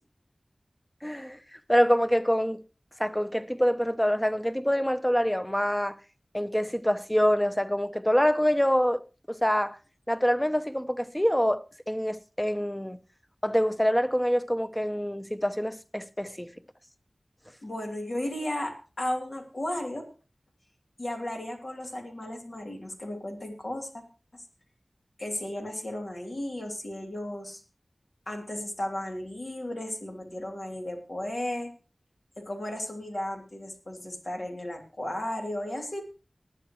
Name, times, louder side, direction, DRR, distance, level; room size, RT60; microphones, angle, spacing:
voice 1, 1.0-1.4 1.7-2.6 3.0-6.0 6.3-9.0 9.3-9.8 10.1-13.0 13.4-16.5, equal, 10° left, 0.8 m, -25 dB
voice 2, 17.6-20.1 21.0-24.0 24.3-24.4 25.2-27.6 28.3-31.7 32.4-36.0, left 1 dB, 65° left, 2.9 m, -34 dB
19.0 x 10.0 x 3.1 m
wide cardioid pair, 55°, 0 cm